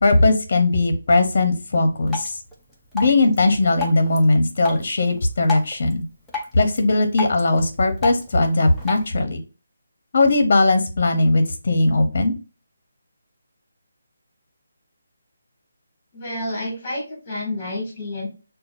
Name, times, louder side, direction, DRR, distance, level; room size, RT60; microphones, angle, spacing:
voice 1, 0.0-2.4 2.9-6.0 6.5-9.4 10.1-12.3, left 2 dB, 45° left, 7 dB, 0.8 m, -19 dB
Drip, 2.1-9.1, left 5 dB, ahead, 0.5 m, -34 dB
voice 2, 16.1-18.3, left 1 dB, 20° left, -1 dB, 1.9 m, -29 dB
5.7 x 2.3 x 2.5 m, 0.32 s
hypercardioid pair, 170°, 0 cm